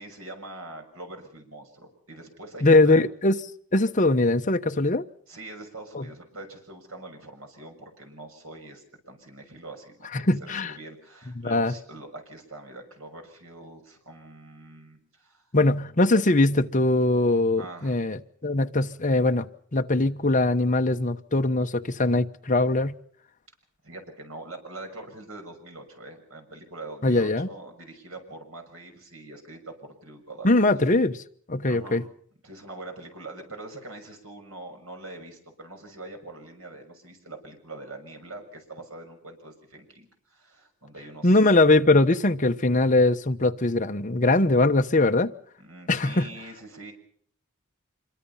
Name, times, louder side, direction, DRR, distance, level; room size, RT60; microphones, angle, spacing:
voice 1, 0.0-3.0 5.3-15.5 17.6-18.0 23.8-30.5 31.7-32.1 32.4-41.4 45.6-46.9, right 2 dB, 70° right, 5 dB, 6.5 m, -43 dB
voice 2, 2.6-3.4 3.7-5.1 5.9-6.0 10.1-10.7 11.4-11.7 15.5-19.4 19.7-23.0 27.0-27.5 30.4-31.2 31.5-32.0 41.2-45.3 45.9-46.3, left 2 dB, 35° left, 6 dB, 1.0 m, -21 dB
26.0 x 23.0 x 5.7 m, 0.62 s
head